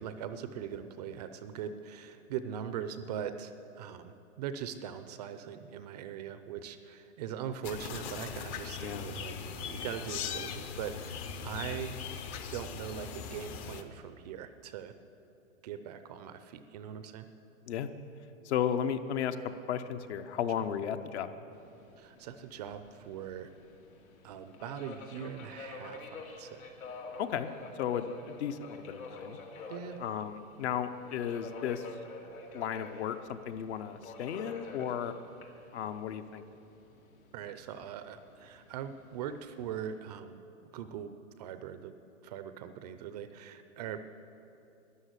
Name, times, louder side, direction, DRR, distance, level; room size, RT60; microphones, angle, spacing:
voice 1, 0.0-12.0 12.5-14.9 15.6-17.3 22.0-23.5 24.2-26.7 29.7-30.0 37.3-40.4 40.7-41.1 41.4-41.9 42.2-44.0, right 8 dB, 30° right, 10 dB, 0.5 m, -41 dB
sound 1, 7.6-13.8, left 7 dB, 25° left, 0.6 m, -40 dB
voice 2, 18.4-19.4 19.7-21.3 27.2-29.4 30.0-31.9 32.5-35.1 35.7-36.4, left 9 dB, 55° left, 10 dB, 0.9 m, -34 dB
Subway metro underground, 21.5-40.0, left 3 dB, 85° left, 2.5 m, -49 dB
13.0 x 11.0 x 8.2 m, 2.7 s
hypercardioid pair, 140°, 41 cm